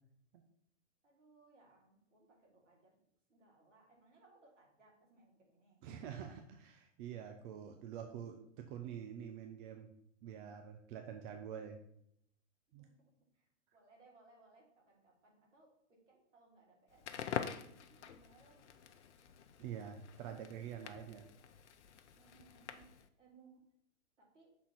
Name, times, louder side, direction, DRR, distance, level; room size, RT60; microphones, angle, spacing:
voice 1, 1.0-2.9 3.3-5.8 12.8-12.9 13.3-18.7 22.1-22.9 23.2-23.6 24.2-24.5, right 3 dB, 75° right, -1 dB, 2.9 m, -66 dB
voice 2, 5.8-9.9 10.2-11.8 12.7-12.9 19.6-21.3, right 8 dB, 40° right, 4 dB, 0.8 m, -47 dB
Crackle, 16.9-23.1, left 8 dB, 65° left, 0.7 m, -46 dB
6.4 x 3.9 x 5.8 m, 0.72 s
hypercardioid pair, 110°, 37 cm